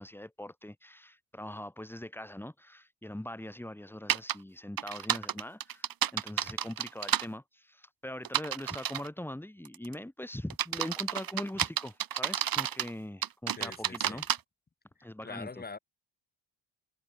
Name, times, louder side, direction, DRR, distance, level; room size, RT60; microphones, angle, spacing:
voice 1, 0.0-14.2 15.0-15.6, left 1 dB, 5° left, 5.9 m, -42 dB
sound 1, 4.1-4.3 4.8-7.3 8.2-9.1 9.6-9.9 10.5-12.9 13.2-14.4, right 10 dB, 50° right, 2.6 m, -30 dB
voice 2, 13.6-14.3 15.2-15.8, left 4 dB, 20° left, 5.6 m, -43 dB
cardioid pair, 175°, 44 cm